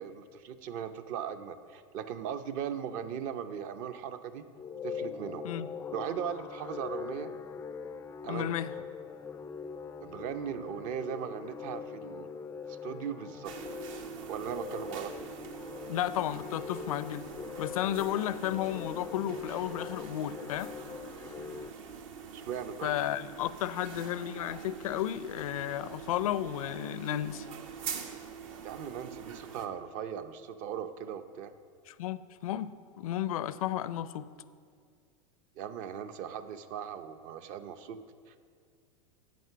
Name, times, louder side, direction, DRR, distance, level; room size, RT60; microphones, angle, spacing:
voice 1, 0.0-4.4 4.8-5.5 5.9-7.3 8.2-8.6 10.0-12.3 12.7-13.5 14.3-15.1 21.4-21.6 22.3-22.9 28.6-31.5 35.6-38.0 38.3-38.4, right 8 dB, 45° right, 10 dB, 0.7 m, -38 dB
sound 1, 4.5-21.7, left 6 dB, 15° left, 0.3 m, -42 dB
voice 2, 8.3-8.7 15.9-17.3 17.6-20.7 22.8-27.5 31.9-34.3, left 12 dB, 80° left, 15 dB, 0.5 m, -33 dB
sound 2, 13.4-29.7, right 7 dB, 65° right, 1.1 m, -45 dB
9.3 x 8.3 x 6.7 m, 2.2 s
supercardioid pair, 125°, 18 cm